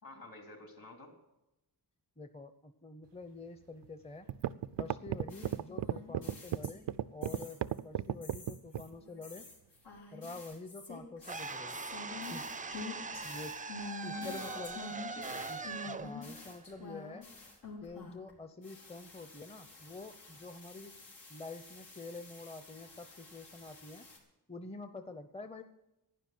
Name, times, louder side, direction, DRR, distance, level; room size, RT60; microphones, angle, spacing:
voice 1, 0.0-1.1 14.1-14.7 15.1-15.5, left 2 dB, 55° left, 2 dB, 3.6 m, -49 dB
voice 2, 2.2-4.3 4.8-6.8 7.1-9.4 10.1-11.7 12.3-12.4 13.2-13.5 14.0-14.9 15.5-15.6 15.9-17.2 17.8-20.9 21.3-24.1 24.5-25.6, left 3 dB, 15° left, 9 dB, 0.7 m, -47 dB
sound 1, 3.8-3.9 4.3-8.9, right 11 dB, 85° right, 0.5 m, -34 dB
sound 2, 5.3-7.8 8.2-18.3 18.6-24.2, left 3 dB, 90° left, 3.7 m, -48 dB
sound 3, 11.2-17.4, right 4 dB, 20° right, 0.5 m, -42 dB
12.0 x 9.8 x 7.8 m, 0.94 s
cardioid pair, 70°, 41 cm